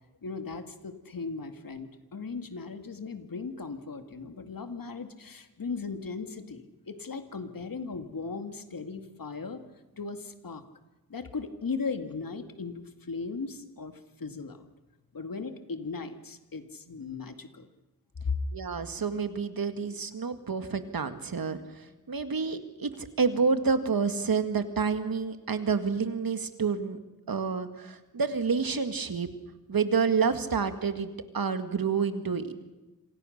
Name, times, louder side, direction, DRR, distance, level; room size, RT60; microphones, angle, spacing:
voice 1, 0.2-9.6 10.0-10.6 11.1-14.7 15.1-17.7 18.2-18.4 22.3-22.5, left 4 dB, 75° left, 8 dB, 2.2 m, -37 dB
voice 2, 18.5-21.6 22.1-27.0 27.3-29.3 29.7-32.5, right 5 dB, 80° right, 9 dB, 2.0 m, -28 dB
27.5 x 26.5 x 6.7 m, 1.1 s
wide cardioid pair, 65°, 34 cm